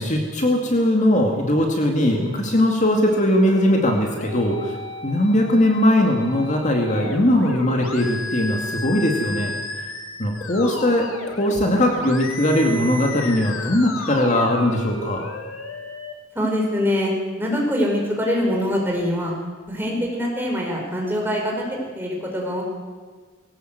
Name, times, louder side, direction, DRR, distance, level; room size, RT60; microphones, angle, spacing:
voice 1, 0.0-4.7 5.0-9.5 10.2-15.2, left 1 dB, 35° left, 2 dB, 2.2 m, -20 dB
sound 1, 3.1-16.1, left 3 dB, 90° left, 2.3 m, -34 dB
voice 2, 16.3-19.3 19.7-22.6, equal, 10° right, -1 dB, 4.6 m, -24 dB
20.0 x 17.5 x 8.0 m, 1.5 s
head